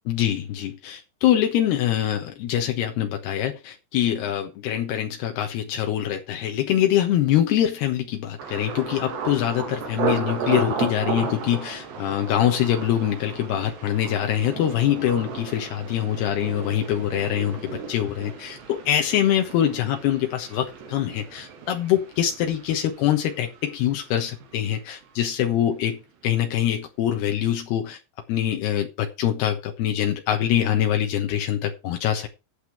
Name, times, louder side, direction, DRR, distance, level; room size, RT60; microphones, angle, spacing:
voice 1, 0.1-26.0 26.2-28.0 28.3-32.3, left 11 dB, 75° left, 3.2 m, -24 dB
Thunder, 8.4-24.2 24.4-25.0 25.5-25.7, right 5 dB, 85° right, 4.7 m, -34 dB
11.5 x 8.4 x 4.9 m
omnidirectional pair, 4.8 m